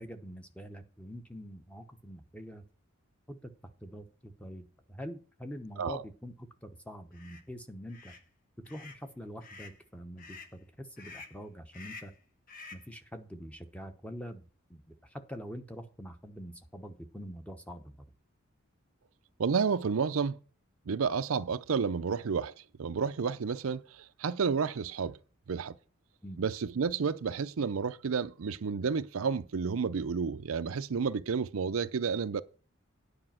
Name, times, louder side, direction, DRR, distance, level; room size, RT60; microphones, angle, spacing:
voice 1, 0.0-2.6 3.3-3.5 3.8-8.1 8.7-12.1 12.7-18.0 26.2-26.4, equal, 5° left, 0.9 m, -45 dB
sound 1, 7.1-7.4 7.9-8.2 8.7-9.0 9.4-9.8 10.2-10.5 11.0-11.4 11.7-12.2 12.5-12.9, left 4 dB, 40° left, 1.2 m, -49 dB
voice 2, 19.4-20.4 20.9-22.5 22.8-25.2 25.5-25.7 26.4-32.4, right 5 dB, 80° right, 0.5 m, -31 dB
9.8 x 5.1 x 7.6 m
head